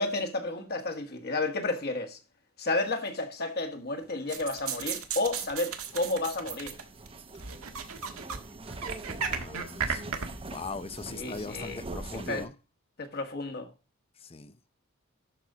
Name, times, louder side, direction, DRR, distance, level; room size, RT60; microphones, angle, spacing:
voice 1, 0.0-2.2 2.6-6.7 11.1-11.8 12.3-12.4 13.0-13.7, left 2 dB, 50° left, 1.7 m, -31 dB
sound 1, 4.0-12.5, right 2 dB, 25° right, 0.8 m, -43 dB
sound 2, 4.3-7.1 7.4-8.4 8.7-10.3, right 6 dB, 85° right, 1.5 m, -34 dB
voice 2, 9.4-12.5 14.2-14.6, left 4 dB, 30° left, 0.6 m, -41 dB
12.5 x 4.2 x 5.0 m
head